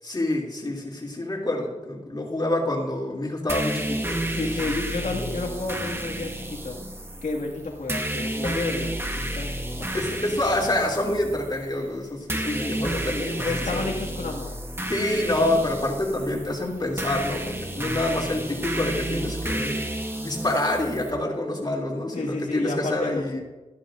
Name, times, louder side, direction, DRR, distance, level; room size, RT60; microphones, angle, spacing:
voice 1, 0.0-4.4 9.9-14.0 14.9-19.8 20.2-23.4, left 1 dB, 35° left, -2 dB, 3.0 m, -27 dB
sound 1, 3.5-21.1, right 1 dB, 20° right, 1.1 m, -31 dB
voice 2, 4.3-6.8 7.2-10.4 12.5-13.1 13.4-14.6 22.1-23.4, left 3 dB, 85° left, 0 dB, 2.0 m, -31 dB
13.5 x 12.0 x 2.6 m, 1.1 s
wide cardioid pair, 95°, 13 cm